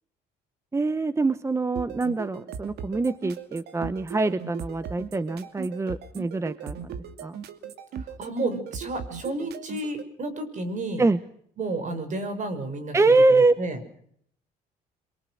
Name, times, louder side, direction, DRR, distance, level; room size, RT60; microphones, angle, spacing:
voice 1, 0.7-7.4 11.0-11.2 12.9-13.5, right 3 dB, 15° right, 14 dB, 1.0 m, -24 dB
sound 1, 1.7-10.0, right 8 dB, 75° right, 2.4 m, -38 dB
voice 2, 8.0-11.0 11.6-13.0 13.3-13.8, right 2 dB, 45° right, 10 dB, 6.1 m, -31 dB
28.0 x 23.0 x 6.4 m, 0.65 s
cardioid pair, 110°, 17 cm